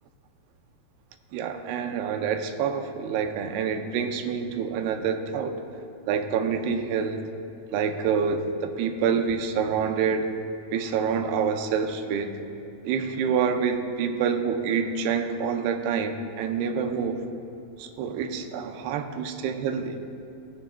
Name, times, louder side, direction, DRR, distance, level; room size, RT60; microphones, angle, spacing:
voice 1, 1.3-5.6 6.1-7.2 7.7-10.3 10.7-12.4 12.8-17.2 17.8-20.0, right 6 dB, 85° right, 6 dB, 2.6 m, -27 dB
20.0 x 7.1 x 2.2 m, 2.8 s
omnidirectional pair, 4.6 m